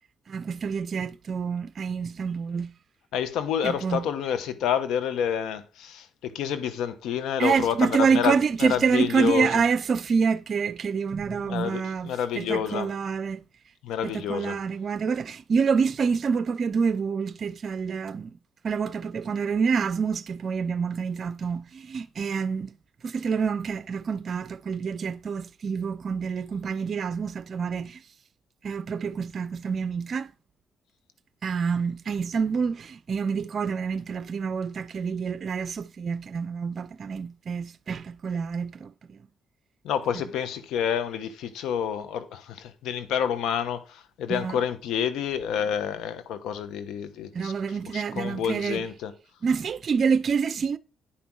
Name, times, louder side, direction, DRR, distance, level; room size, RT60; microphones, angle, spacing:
voice 1, 0.3-2.7 3.6-4.0 7.4-13.4 14.0-18.3 18.6-22.7 23.0-28.0 28.6-30.3 31.4-39.2 40.1-40.2 44.3-44.6 47.3-48.8 49.4-50.8, right 6 dB, 50° right, 0.7 m, -27 dB
voice 2, 3.1-9.6 11.3-12.9 13.8-14.6 39.8-47.5 47.9-49.1, left 8 dB, 85° left, 1.1 m, -29 dB
10.0 x 5.9 x 4.7 m
cardioid pair, 90°, 0 cm